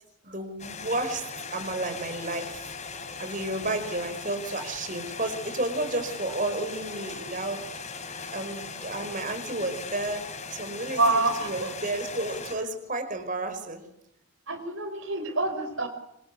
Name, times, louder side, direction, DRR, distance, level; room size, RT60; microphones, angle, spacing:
voice 1, 0.2-7.8 8.3-13.8, right 2 dB, 35° right, 7 dB, 5.3 m, -32 dB
sound 1, 0.6-12.6, left 5 dB, 30° left, 4.6 m, -39 dB
voice 2, 10.9-11.7 14.5-15.9, right 2 dB, 60° right, 7 dB, 5.0 m, -26 dB
27.0 x 26.0 x 8.4 m, 0.80 s
head